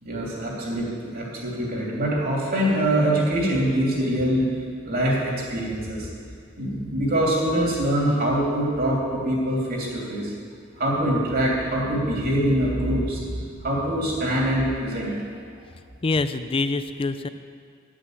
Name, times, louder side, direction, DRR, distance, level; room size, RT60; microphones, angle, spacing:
voice 1, 0.0-4.5 4.8-6.1 6.6-10.3 10.8-15.2, right 1 dB, 50° right, -4 dB, 3.0 m, -24 dB
voice 2, 16.0-17.3, left 3 dB, 25° left, 11 dB, 0.4 m, -25 dB
10.5 x 6.3 x 7.7 m, 2.3 s
head